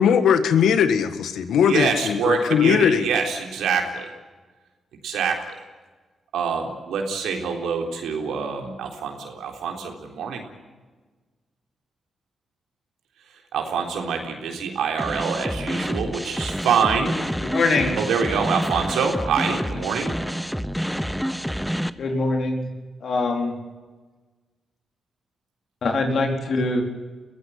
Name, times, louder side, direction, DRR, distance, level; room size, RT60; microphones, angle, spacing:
voice 1, 0.0-3.1, left 7 dB, 85° left, 11 dB, 1.7 m, -19 dB
voice 2, 1.7-4.1 5.0-5.4 6.3-10.5 13.5-17.2 18.0-20.2, right 6 dB, 90° right, 3 dB, 3.8 m, -25 dB
sound 1, 15.0-21.9, equal, ahead, 1.0 m, -28 dB
voice 3, 17.4-18.0 19.8-19.9 22.0-22.7 23.0-23.6 25.8-26.8, left 3 dB, 65° left, 3 dB, 4.2 m, -23 dB
22.5 x 16.0 x 9.5 m, 1.3 s
cardioid pair, 70°, 0 cm